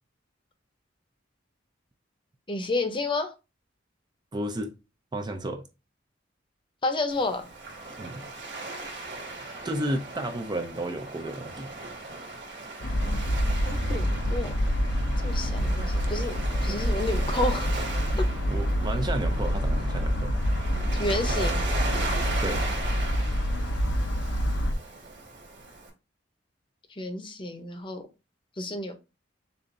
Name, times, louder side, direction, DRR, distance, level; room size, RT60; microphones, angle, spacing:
voice 1, 2.5-3.3 6.8-7.5 13.6-14.5 15.2-16.3 16.6-17.7 18.2-18.3 20.9-21.6 27.0-28.0 28.6-28.9, left 2 dB, 25° left, 0.7 m, -30 dB
voice 2, 4.3-4.7 5.1-5.7 8.0-8.2 9.6-11.7 18.5-20.3 22.4-22.7, right 1 dB, 25° right, 0.5 m, -32 dB
Waves surf, 7.1-25.9, right 2 dB, 65° right, 2.1 m, -37 dB
sound 1, 12.8-24.7, equal, 85° left, 0.7 m, -27 dB
6.8 x 2.5 x 2.6 m
head